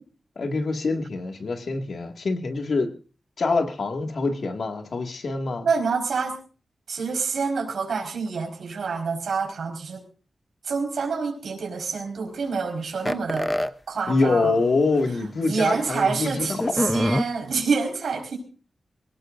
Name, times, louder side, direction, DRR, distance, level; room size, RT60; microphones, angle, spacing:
voice 1, 0.4-2.9 3.4-5.7 14.1-16.5 16.8-16.9, left 3 dB, 55° left, 4 dB, 2.1 m, -25 dB
voice 2, 5.6-6.4 6.9-10.0 10.6-14.6 15.4-18.4, right 5 dB, 85° right, 3 dB, 4.8 m, -27 dB
sound 1, 13.0-13.7 14.6-14.7 15.0-15.1 16.6-17.2, left 1 dB, 10° left, 0.7 m, -24 dB
24.0 x 18.0 x 2.6 m, 0.36 s
wide cardioid pair, 170°, 0 cm